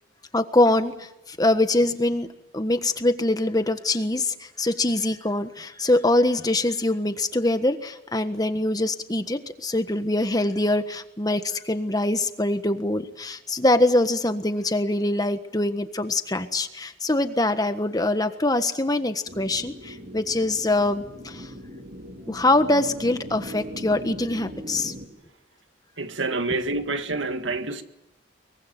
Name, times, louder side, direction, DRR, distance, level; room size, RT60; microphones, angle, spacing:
voice 1, 0.3-2.3 2.5-21.5 22.3-24.9, left 2 dB, 20° left, 1.4 m, -23 dB
sound 1, 19.3-25.1, equal, 50° right, 3.0 m, -39 dB
voice 2, 26.0-27.8, right 3 dB, 90° right, 1.9 m, -27 dB
24.0 x 23.0 x 9.3 m
head